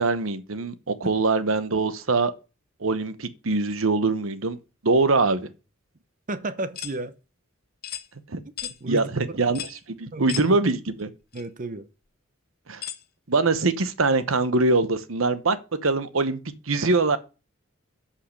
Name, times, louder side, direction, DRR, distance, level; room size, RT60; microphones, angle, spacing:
voice 1, 0.0-2.3 2.8-4.6 4.8-5.5 8.3-8.4 8.9-11.1 12.7-12.8 13.3-15.6 15.8-16.4 16.7-17.2, right 3 dB, 75° right, 1.0 m, -23 dB
voice 2, 6.3-7.2 8.6-9.4 10.1-10.4 11.3-11.9, right 2 dB, 40° right, 0.8 m, -33 dB
sound 1, 6.8-7.0 7.8-8.1 8.6-8.8 9.6-9.8 10.3-10.5 11.3-11.4 12.8-13.0, left 11 dB, 50° left, 0.8 m, -35 dB
8.4 x 5.7 x 6.5 m
head